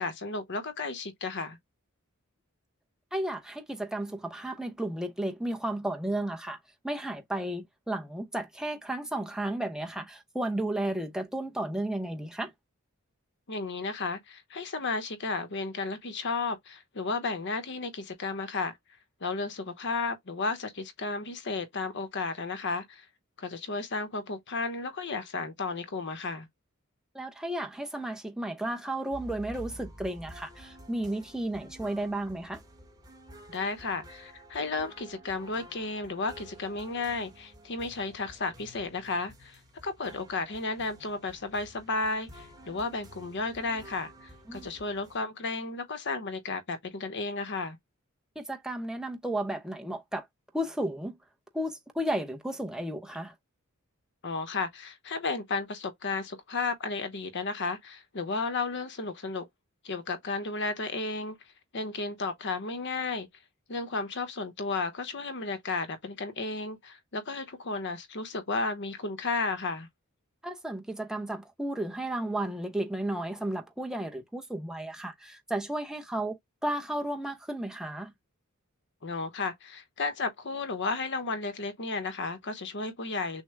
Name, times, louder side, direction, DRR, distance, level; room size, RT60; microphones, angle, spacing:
voice 1, 0.0-1.6 13.5-18.8 19.2-23.1 23.4-26.5 33.5-47.8 54.2-59.5 59.8-61.4 61.7-63.3 63.7-69.9 79.0-83.4, left 3 dB, 55° left, 0.9 m, -33 dB
voice 2, 3.1-6.6 6.8-12.5 27.1-32.6 44.5-44.7 48.4-50.3 50.5-51.2 51.5-53.3 70.4-78.1, right 1 dB, 5° right, 0.7 m, -33 dB
sound 1, 29.1-45.2, right 1 dB, 20° right, 1.3 m, -50 dB
6.5 x 2.2 x 3.3 m
head